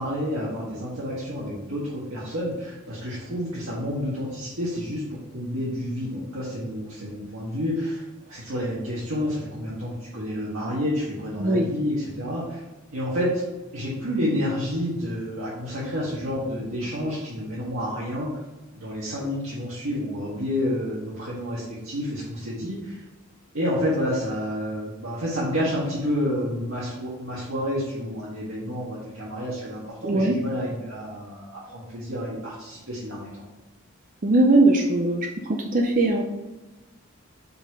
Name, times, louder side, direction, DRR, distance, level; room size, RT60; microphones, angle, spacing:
voice 1, 0.0-12.6 12.9-13.4 13.7-18.3 18.7-23.0 23.5-33.4, equal, 70° right, -8 dB, 1.6 m, -29 dB
voice 2, 30.0-30.4 34.2-35.3 35.7-36.2, right 2 dB, 40° right, 2 dB, 0.5 m, -19 dB
5.5 x 4.3 x 4.7 m, 1.1 s
head